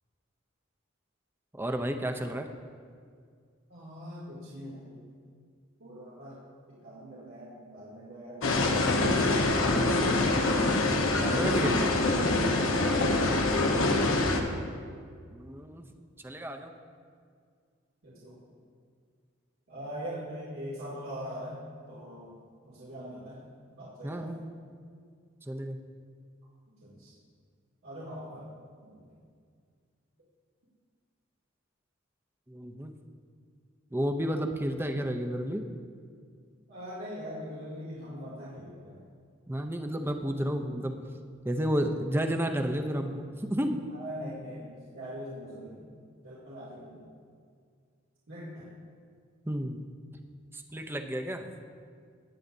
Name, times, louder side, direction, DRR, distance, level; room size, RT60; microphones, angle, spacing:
voice 1, 1.5-2.5 11.2-11.9 15.3-15.9 16.2-16.7 24.0-24.4 25.5-25.8 32.5-32.9 33.9-35.7 39.5-41.0 41.4-43.9 49.5-49.8 50.5-51.5, equal, 10° right, 5 dB, 0.5 m, -31 dB
voice 2, 3.7-5.0 5.8-9.2 13.0-14.9 18.0-18.4 19.7-22.4 22.6-23.4 23.8-24.3 26.8-27.1 27.8-28.5 28.9-29.2 36.7-39.1 40.7-40.8 43.9-45.8 46.2-47.1 48.3-48.7, equal, 85° right, -10 dB, 2.4 m, -42 dB
sound 1, 8.4-14.4, left 2 dB, 85° left, 1.0 m, -25 dB
18.0 x 8.4 x 2.7 m, 2.1 s
head